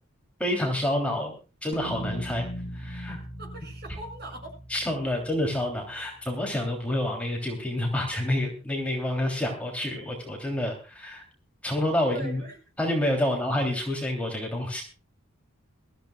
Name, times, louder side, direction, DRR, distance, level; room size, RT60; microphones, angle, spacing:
voice 1, 0.4-1.3 1.6-2.5 2.7-3.2 4.7-11.2 11.6-12.4 12.8-14.8, left 1 dB, 5° left, 0 dB, 3.2 m, -28 dB
sound 1, 1.7-6.3, equal, 70° left, 1.9 m, -39 dB
voice 2, 3.4-4.5 12.1-12.6, right 1 dB, 45° right, 1 dB, 7.1 m, -40 dB
23.0 x 14.5 x 2.4 m, 0.33 s
head